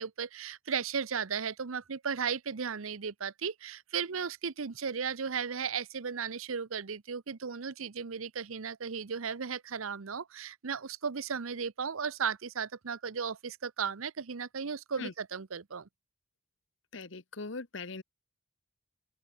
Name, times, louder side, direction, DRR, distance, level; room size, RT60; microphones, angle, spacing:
voice 1, 0.0-15.9, right 6 dB, 90° right, 0.8 m, -35 dB
voice 2, 16.9-18.0, left 3 dB, 65° left, 1.2 m, -40 dB
open air
head